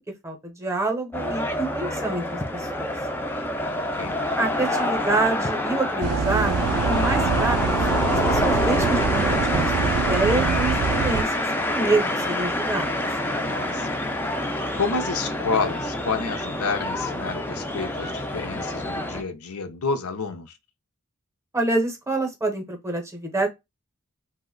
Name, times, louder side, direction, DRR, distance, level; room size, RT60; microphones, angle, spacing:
voice 1, 0.2-2.9 4.4-7.6 8.1-11.3 11.7-13.0 21.5-23.5, right 2 dB, 15° right, 0.7 m, -27 dB
sound 1, 1.1-19.2, left 1 dB, 10° left, 0.3 m, -26 dB
voice 2, 3.8-4.1 13.4-14.0 14.8-20.5, left 4 dB, 85° left, 0.6 m, -29 dB
sound 2, 6.0-11.2, right 6 dB, 75° right, 0.3 m, -25 dB
2.9 x 2.1 x 3.6 m
head